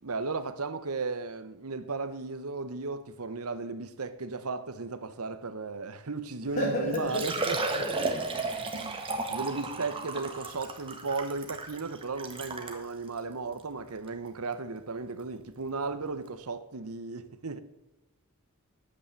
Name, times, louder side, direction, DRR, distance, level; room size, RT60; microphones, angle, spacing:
voice 1, 0.0-7.9 8.7-17.6, right 3 dB, 85° right, 1.0 m, -35 dB
voice 2, 6.5-7.4 7.7-8.7, equal, 45° left, 2.8 m, -33 dB
Liquid, 6.5-6.6 6.9-12.8 13.5-13.6 14.1-14.2 15.8-15.9 16.1-16.2, right 3 dB, 25° right, 1.5 m, -34 dB
10.0 x 8.6 x 7.3 m
head